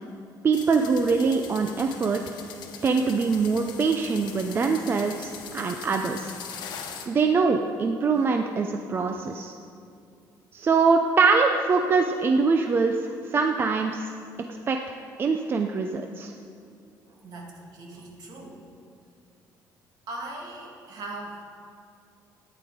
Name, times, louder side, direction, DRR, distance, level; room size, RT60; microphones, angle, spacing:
voice 1, 0.4-2.2 2.8-6.3 7.1-9.5 10.5-13.0 13.3-14.1 14.7-16.3, right 4 dB, 30° right, 5 dB, 0.5 m, -23 dB
sound 1, 0.5-7.1, left 7 dB, 70° left, 1.2 m, -41 dB
voice 2, 17.1-18.6 20.1-21.5, right 2 dB, 60° right, -1 dB, 2.3 m, -40 dB
13.0 x 9.7 x 5.0 m, 2.4 s
cardioid pair, 150°, 8 cm